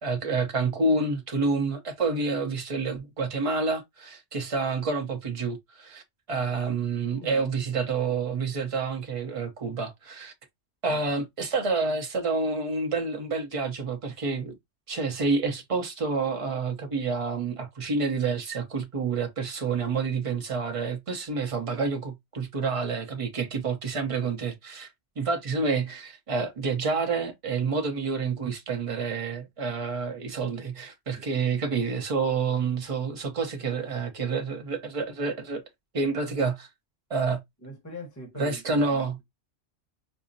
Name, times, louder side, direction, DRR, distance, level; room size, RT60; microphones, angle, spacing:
voice 1, 0.0-6.0 6.3-10.3 10.8-14.6 14.9-24.9 25.2-35.6 35.9-36.7 37.1-37.4 38.4-39.2, right 4 dB, 35° right, 0.7 m, -28 dB
voice 2, 7.1-7.8 10.9-11.0 37.6-39.0, equal, 15° left, 1.1 m, -42 dB
5.4 x 2.0 x 2.5 m
omnidirectional pair, 1.3 m